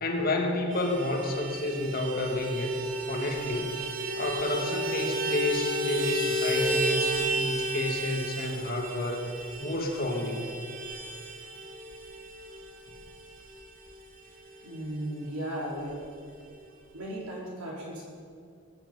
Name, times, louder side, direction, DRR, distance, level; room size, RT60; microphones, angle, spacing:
voice 1, 0.0-2.8 3.1-3.8 4.2-9.3 9.6-10.5, left 2 dB, 40° left, 2 dB, 1.7 m, -30 dB
Vehicle horn car horn honking, 0.7-14.6 14.9-15.0 15.3-15.5 15.7-16.5, right 1 dB, 40° right, 1.6 m, -33 dB
voice 2, 14.6-16.0 16.9-18.1, right 1 dB, 85° right, -4 dB, 4.4 m, -36 dB
18.5 x 10.5 x 5.4 m, 2.3 s
head